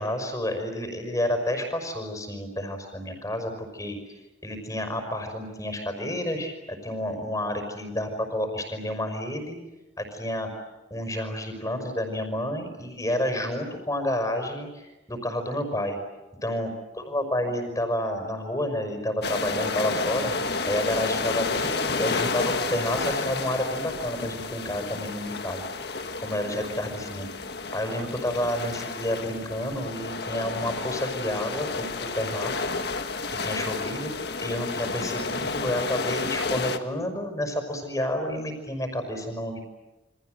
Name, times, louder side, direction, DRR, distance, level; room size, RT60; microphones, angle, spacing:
voice 1, 0.0-4.0 4.4-9.6 10.0-10.5 10.9-16.0 16.4-16.7 17.1-20.3 20.7-25.6 26.2-27.3 27.7-32.7 33.4-34.1 34.4-39.6, left 1 dB, 20° left, 6 dB, 5.6 m, -30 dB
sound 1, 19.2-36.8, left 4 dB, 60° left, 1.7 m, -31 dB
29.0 x 25.5 x 8.0 m, 1.1 s
head